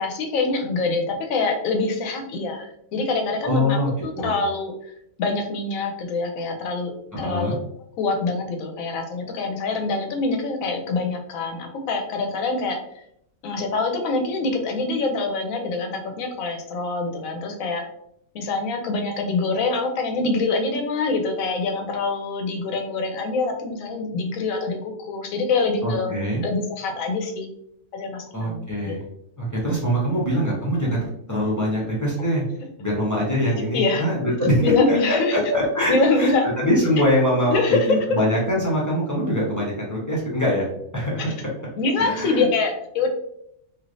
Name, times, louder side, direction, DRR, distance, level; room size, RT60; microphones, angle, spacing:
voice 1, 0.0-4.7 5.2-7.6 8.0-12.8 13.4-17.8 18.3-26.1 26.4-27.5 27.9-29.0 33.7-34.1 34.6-35.4 35.9-36.5 37.5-38.0 41.8-43.1, left 3 dB, 70° left, 4 dB, 1.0 m, -25 dB
voice 2, 3.4-4.3 7.1-7.6 25.8-26.4 28.3-29.0 29.4-31.0 31.3-32.4 32.8-40.7 40.9-41.4 42.0-42.5, equal, 15° left, -4 dB, 0.7 m, -23 dB
3.1 x 2.7 x 2.6 m, 0.73 s
omnidirectional pair, 1.6 m